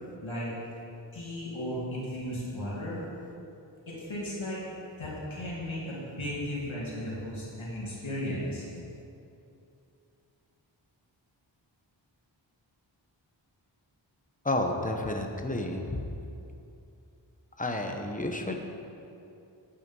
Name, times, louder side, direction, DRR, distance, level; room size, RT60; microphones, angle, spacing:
voice 1, 1.1-3.0 3.9-4.6 5.0-8.6, equal, 85° left, -7 dB, 2.5 m, -35 dB
voice 2, 14.4-16.0 17.6-18.5, left 1 dB, 15° left, 3 dB, 1.0 m, -30 dB
9.2 x 8.5 x 5.4 m, 2.7 s
wide cardioid pair, 70°, 47 cm